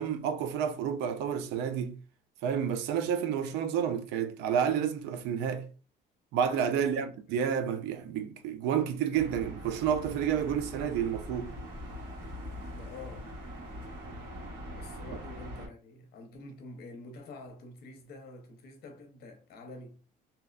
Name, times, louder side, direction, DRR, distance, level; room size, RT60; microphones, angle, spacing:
voice 1, 0.0-2.0 2.4-5.7 6.3-11.5, right 8 dB, 90° right, 0.4 m, -30 dB
voice 2, 6.7-7.1 12.7-13.3 14.7-20.0, left 2 dB, 70° left, 0.7 m, -47 dB
sound 1, 9.1-15.7, equal, 65° right, 1.3 m, -42 dB
2.8 x 2.0 x 2.3 m
cardioid pair, 110°, 17 cm